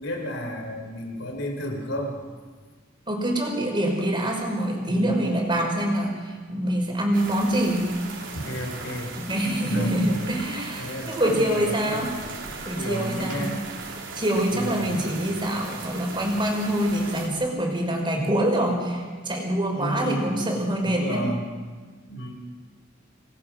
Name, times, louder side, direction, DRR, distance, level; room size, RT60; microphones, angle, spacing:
voice 1, 0.0-2.2 4.8-5.3 8.3-9.1 9.6-10.2 10.8-12.0 12.5-13.6 14.5-15.0 19.7-20.4 20.8-21.4 22.1-22.4, equal, 75° left, 2 dB, 4.5 m, -32 dB
voice 2, 3.1-7.9 9.3-12.1 12.6-13.5 14.1-21.3, right 1 dB, 25° right, 2 dB, 5.1 m, -25 dB
sound 1, 7.1-17.3, right 4 dB, 70° right, 3.8 m, -38 dB
28.0 x 20.5 x 6.3 m, 1.5 s
head